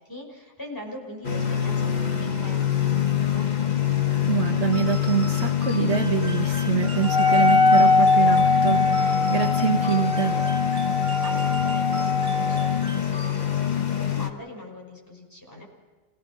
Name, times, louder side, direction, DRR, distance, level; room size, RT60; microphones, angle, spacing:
voice 1, 0.0-3.5 11.2-15.6, left 1 dB, 15° left, -1 dB, 5.7 m, -41 dB
sound 1, 1.2-14.3, left 10 dB, 35° left, 1.3 m, -25 dB
voice 2, 4.3-10.4, right 8 dB, 60° right, 2 dB, 1.7 m, -25 dB
sound 2, 4.7-13.8, right 1 dB, 40° right, 2.0 m, -41 dB
Wind instrument woodwind instrument, 7.0-12.8, left 3 dB, 5° right, 0.8 m, -21 dB
27.0 x 18.5 x 6.3 m, 1.3 s
omnidirectional pair, 1.3 m